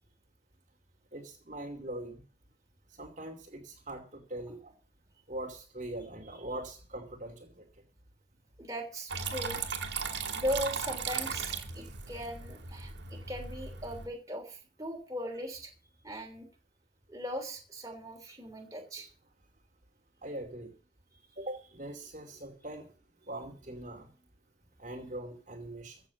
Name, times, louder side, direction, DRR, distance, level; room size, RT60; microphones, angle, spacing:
voice 1, 1.1-2.2 3.0-4.7 5.3-7.7 11.8-11.9 20.2-20.7 21.4-22.9 23.3-24.1 24.8-26.0, right 1 dB, 40° right, 2 dB, 2.5 m, -42 dB
voice 2, 8.6-9.7 10.3-15.7 16.0-16.5 17.1-19.1, equal, 20° right, 2 dB, 3.2 m, -38 dB
Water tap faucet / Trickle dribble, 9.1-14.1, right 6 dB, 65° right, 2.6 m, -37 dB
15.0 x 7.1 x 7.1 m, 0.38 s
head